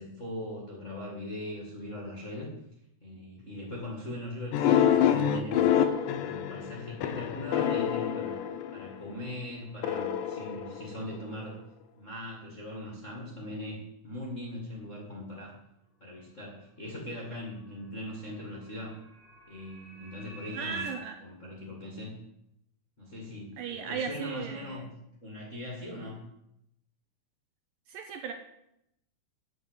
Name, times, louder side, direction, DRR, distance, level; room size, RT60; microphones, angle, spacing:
voice 1, 0.0-2.5 3.0-5.7 6.1-8.4 8.7-11.6 12.0-15.5 16.0-19.0 19.5-20.8 21.2-22.2 23.0-24.9 25.2-26.2, left 1 dB, 30° left, -4 dB, 1.4 m, -40 dB
sound 1, 4.5-9.1 9.8-11.4, left 9 dB, 80° left, 1.8 m, -27 dB
sound 2, 16.7-20.9, right 2 dB, 5° right, 2.2 m, -50 dB
voice 2, 20.5-21.2 23.6-24.9 27.9-28.3, right 7 dB, 75° right, 5 dB, 2.1 m, -36 dB
9.7 x 6.1 x 8.0 m, 0.81 s
omnidirectional pair, 4.6 m